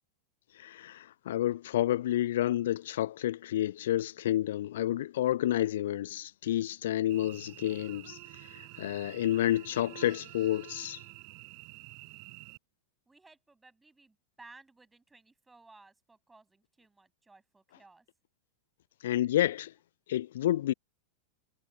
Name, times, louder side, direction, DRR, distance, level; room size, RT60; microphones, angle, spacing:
voice 1, 0.5-11.0 19.0-19.7 20.1-20.7, left 13 dB, 60° left, 0.6 m, -30 dB
Cricket / Buzz, 7.1-12.6, right 35 dB, 45° right, 6.0 m, -49 dB
voice 2, 13.1-18.1, right 3 dB, 10° right, 6.9 m, -58 dB
figure-of-eight pair, 90°, 0 cm